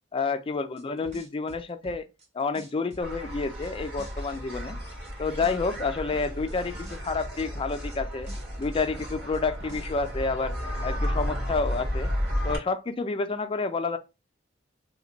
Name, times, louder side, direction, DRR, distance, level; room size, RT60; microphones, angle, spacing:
voice 1, 0.1-2.1 2.3-4.8 5.2-8.3 8.6-10.6 10.8-12.1 12.4-14.0, left 4 dB, 30° left, 0.4 m, -29 dB
sound 1, 0.8-2.2 2.5-3.7 4.0-5.1 5.4-8.0 8.3-10.2, right 1 dB, 35° right, 0.9 m, -47 dB
sound 2, 3.0-12.6, equal, 55° right, 1.8 m, -33 dB
3.3 x 2.2 x 3.9 m
head